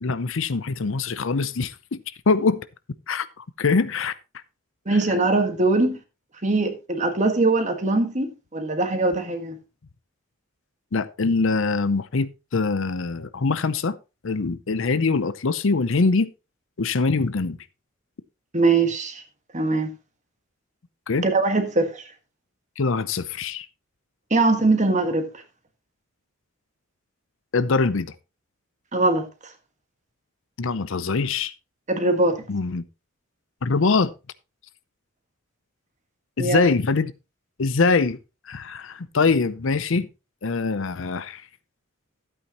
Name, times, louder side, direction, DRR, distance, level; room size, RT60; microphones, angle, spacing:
voice 1, 0.0-2.0 2.3-2.6 3.1-4.1 10.9-14.0 14.2-16.3 16.8-17.6 21.1-21.3 22.8-23.7 27.5-28.1 30.6-31.5 32.5-32.8 33.6-34.1 36.4-37.1 37.6-38.2 38.5-40.1 40.4-41.4, left 4 dB, 65° left, 0.6 m, -23 dB
voice 2, 4.8-6.0 6.4-9.6 18.5-19.2 19.5-19.9 21.2-22.0 24.3-25.3 28.9-29.3 31.9-32.4 36.4-36.6, right 2 dB, 35° right, 1.6 m, -21 dB
12.5 x 8.6 x 3.0 m
head